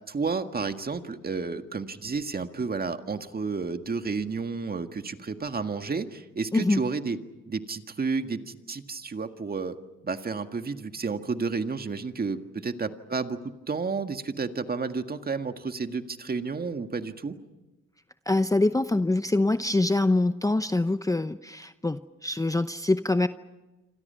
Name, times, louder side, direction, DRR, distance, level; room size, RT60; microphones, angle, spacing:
voice 1, 0.1-7.2 7.5-9.8 10.0-13.4 13.7-17.3, right 4 dB, 30° right, 7 dB, 1.8 m, -31 dB
voice 2, 6.5-6.8 18.3-23.3, left 2 dB, 10° left, 10 dB, 0.8 m, -24 dB
27.5 x 27.0 x 5.7 m, 1.1 s
cardioid pair, 90°, 30 cm